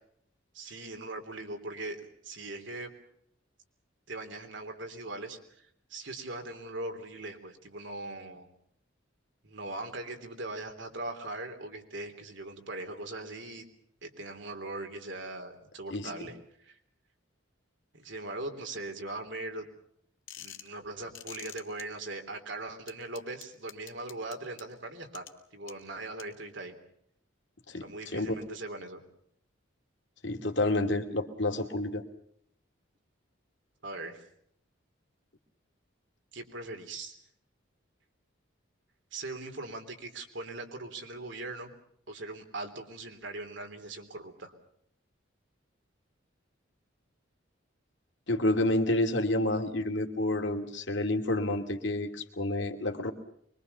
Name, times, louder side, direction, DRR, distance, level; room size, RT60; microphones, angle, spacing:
voice 1, 0.5-2.9 4.1-8.5 9.4-13.6 14.0-16.8 17.9-19.7 20.4-25.3 25.5-26.7 27.7-29.0 33.8-34.2 36.3-37.2 39.1-41.7 42.1-44.5, right 2 dB, 65° right, 5 dB, 3.5 m, -40 dB
sound 1, 20.3-20.7 21.1-21.8 22.9-24.6 25.1-25.3 25.7-25.8 26.2-26.3, left 11 dB, 85° left, 2.5 m, -45 dB
voice 2, 30.2-32.0 48.3-53.1, left 1 dB, 65° left, 5 dB, 2.6 m, -29 dB
24.5 x 23.0 x 6.9 m, 0.69 s
head